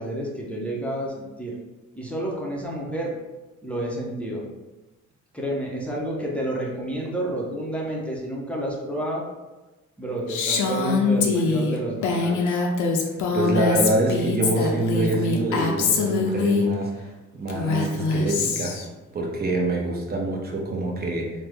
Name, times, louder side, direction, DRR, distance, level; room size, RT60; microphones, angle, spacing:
voice 1, 0.0-1.6 1.9-3.2 3.6-4.5 5.3-9.3 10.0-12.6, right 1 dB, 5° left, -4 dB, 0.6 m, -30 dB
Female speech woman speaking, 10.3-16.7 17.5-18.9, left 4 dB, 75° left, 0.5 m, -23 dB
voice 2, 13.3-16.9 17.3-18.8 19.1-21.3, right 2 dB, 30° right, -1 dB, 0.7 m, -25 dB
3.4 x 2.0 x 3.3 m, 1.1 s
cardioid pair, 90°, 30 cm